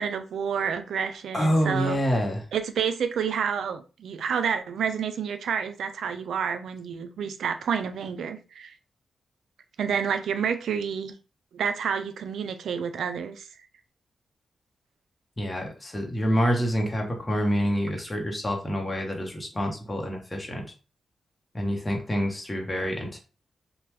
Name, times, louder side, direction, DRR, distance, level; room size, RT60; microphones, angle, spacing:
voice 1, 0.0-2.0 2.5-8.7 9.8-11.1 11.5-13.5, right 7 dB, 85° right, 0.4 m, -29 dB
voice 2, 1.3-2.5 15.4-20.6 21.5-23.2, equal, 20° left, 0.9 m, -27 dB
2.9 x 2.2 x 3.2 m
cardioid pair, 65°, 0 cm